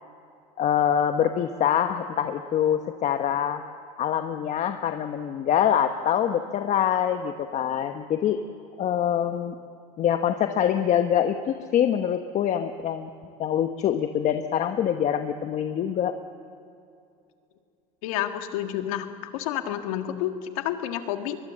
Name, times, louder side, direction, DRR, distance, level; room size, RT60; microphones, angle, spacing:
voice 1, 0.6-3.6 4.0-8.4 8.8-9.5 10.0-13.1 13.4-16.2, left 9 dB, 45° left, 7 dB, 1.1 m, -24 dB
voice 2, 18.0-21.4, left 11 dB, 85° left, 7 dB, 1.8 m, -30 dB
23.0 x 21.0 x 7.6 m, 2.6 s
supercardioid pair, 120°, 18 cm